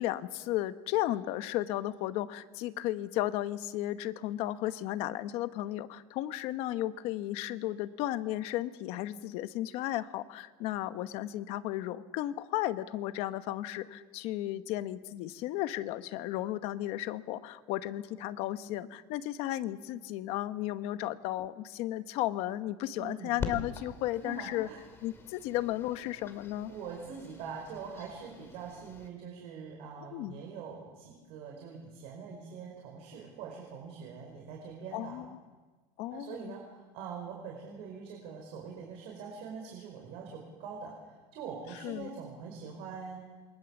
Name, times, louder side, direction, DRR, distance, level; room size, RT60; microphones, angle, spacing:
voice 1, 0.0-24.7 25.0-26.7 30.1-30.4 34.9-35.3 36.0-36.5 41.8-42.1, left 14 dB, 60° left, 12 dB, 1.1 m, -34 dB
voice 2, 23.0-23.4 24.2-24.8 26.7-35.2 36.1-43.2, right 6 dB, 60° right, 0 dB, 5.0 m, -44 dB
sound 1, 23.4-29.1, left 5 dB, 20° left, 2.5 m, -44 dB
27.5 x 23.0 x 7.2 m, 1.3 s
cardioid pair, 170°, 12 cm